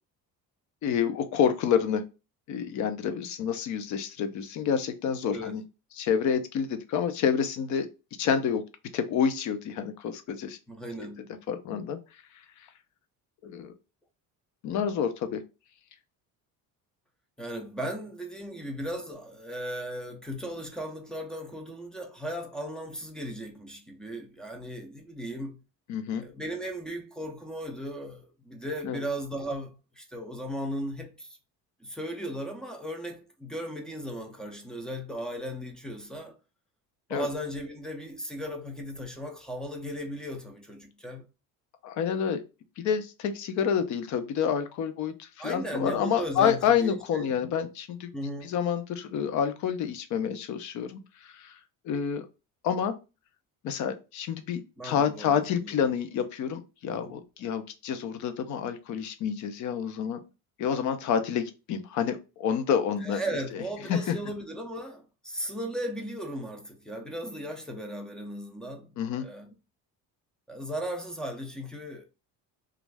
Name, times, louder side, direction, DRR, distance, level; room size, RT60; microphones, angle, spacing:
voice 1, 0.8-2.0 2.5-5.6 6.0-7.9 8.2-8.6 8.9-10.6 11.5-12.0 13.4-13.7 14.6-15.4 25.9-26.2 28.8-29.0 37.1-37.3 41.8-42.4 42.8-48.1 48.4-51.5 51.8-52.3 52.6-52.9 53.6-60.2 60.6-63.2 63.5-63.6 63.9-64.2 69.0-69.2, left 7 dB, 55° left, 0.6 m, -28 dB
voice 2, 10.7-11.4 17.4-25.6 26.2-31.4 31.8-36.4 37.1-41.3 45.4-47.2 48.1-48.5 54.8-55.9 56.9-57.2 63.0-69.5 70.5-72.0, equal, ahead, 0.4 m, -36 dB
3.1 x 2.4 x 3.3 m
cardioid pair, 160°, 36 cm